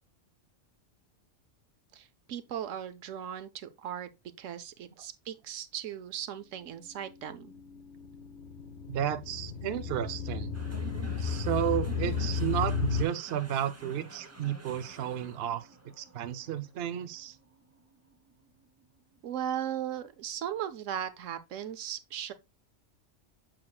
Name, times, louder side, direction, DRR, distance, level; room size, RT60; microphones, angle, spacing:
voice 1, 1.9-4.1 4.4-7.5 19.2-22.3, right 10 dB, 80° right, 1.1 m, -37 dB
sound 1, 7.1-13.0, left 6 dB, 60° left, 1.2 m, -34 dB
voice 2, 8.9-10.5 11.2-15.7 16.0-17.4, right 10 dB, 60° right, 0.8 m, -32 dB
sound 2, 10.5-19.0, right 1 dB, 15° right, 0.7 m, -48 dB
7.6 x 6.0 x 2.3 m
omnidirectional pair, 1.3 m